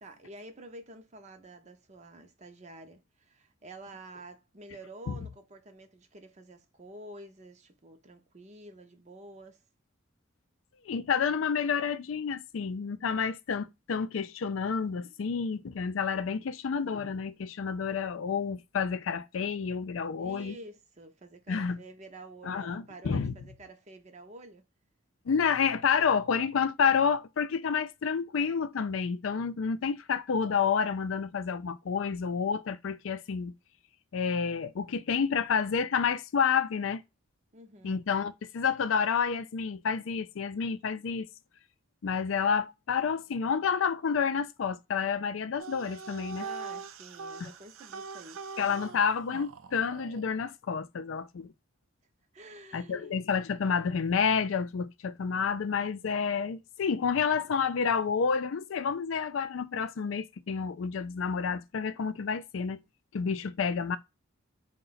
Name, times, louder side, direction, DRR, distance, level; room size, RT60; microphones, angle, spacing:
voice 1, 0.0-9.6 20.2-24.6 37.5-38.0 46.3-48.6 48.9-49.0 52.3-53.1, right 2 dB, 35° right, 0.6 m, -49 dB
voice 2, 10.8-20.6 21.5-21.8 22.4-23.3 25.3-33.5 34.1-37.0 37.8-41.3 42.0-46.5 47.4-47.5 48.6-51.5 52.7-62.8 63.1-64.0, left 6 dB, 75° left, 0.4 m, -29 dB
sound 1, 45.6-50.3, right 5 dB, 85° right, 0.5 m, -42 dB
3.9 x 2.2 x 3.9 m
head